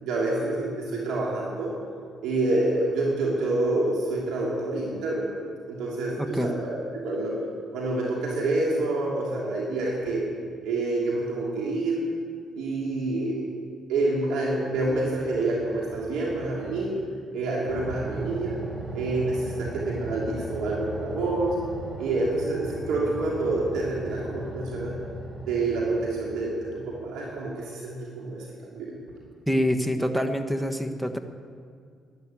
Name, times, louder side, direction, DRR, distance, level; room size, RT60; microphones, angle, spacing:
voice 1, 0.0-1.7 2.2-5.3 5.7-7.3 7.7-10.2 10.6-12.0 12.6-13.4 13.9-17.0 17.3-18.6 18.9-21.6 22.0-24.9 25.5-28.9, right 2 dB, 85° right, -4 dB, 3.0 m, -27 dB
voice 2, 6.2-6.5 29.5-31.2, equal, 5° right, 7 dB, 1.3 m, -26 dB
sound 1, 15.0-17.0 17.7-27.0, right 1 dB, 25° right, 4.1 m, -39 dB
12.0 x 11.5 x 9.1 m, 2.2 s
cardioid pair, 90°, 0 cm